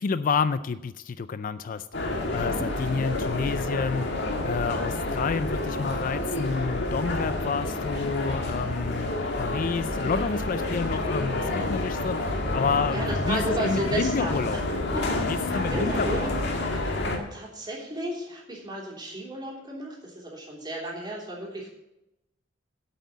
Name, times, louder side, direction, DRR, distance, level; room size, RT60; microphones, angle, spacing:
voice 1, 0.0-14.6 15.3-16.3, left 5 dB, 45° left, 13 dB, 0.4 m, -29 dB
sound 1, 1.9-17.2, left 2 dB, 60° left, 1.8 m, -29 dB
voice 2, 2.4-2.7 12.9-14.6 14.9-15.2 15.5-16.3 17.3-21.7, right 1 dB, 25° right, -3 dB, 3.4 m, -34 dB
8.2 x 7.9 x 8.4 m, 0.90 s
head